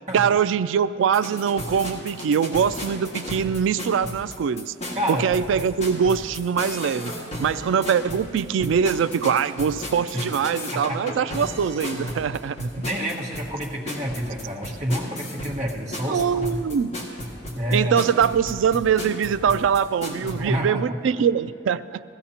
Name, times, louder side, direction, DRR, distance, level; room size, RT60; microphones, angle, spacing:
voice 1, 0.1-4.7 5.1-7.1 7.4-12.9 16.1-16.9 17.7-22.0, right 7 dB, 80° right, 15 dB, 0.3 m, -23 dB
sound 1, 1.0-20.3, left 1 dB, 35° left, 1.8 m, -34 dB
voice 2, 4.9-5.3 10.1-10.3 10.7-11.0 12.7-16.6 17.5-17.9 20.3-20.9, equal, 35° right, -4 dB, 1.6 m, -28 dB
16.0 x 15.0 x 2.9 m, 2.3 s
head